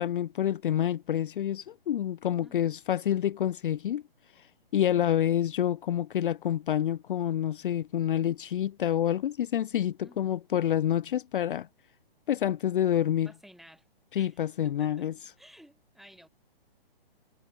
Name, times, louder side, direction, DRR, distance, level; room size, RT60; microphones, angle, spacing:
voice 1, 0.0-4.0 4.4-4.5 4.7-11.7 12.3-13.3 14.1-15.1, left 11 dB, 60° left, 0.5 m, -28 dB
voice 2, 2.4-2.7 4.9-5.2 10.0-10.4 13.2-13.9 14.2-15.1 15.4-16.3, equal, ahead, 4.3 m, -54 dB
hypercardioid pair, 150°, 30 cm